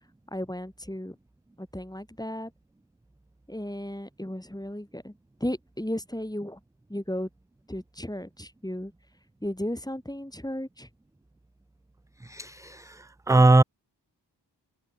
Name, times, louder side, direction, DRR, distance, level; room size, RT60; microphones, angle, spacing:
voice 1, 0.3-1.2 1.6-2.5 3.5-5.1 5.4-6.6 6.9-7.3 7.7-8.9 9.4-10.9, left 1 dB, 10° left, 4.4 m, -34 dB
voice 2, 12.2-13.6, right 2 dB, 10° right, 0.3 m, -21 dB
cardioid pair, 40°, 43 cm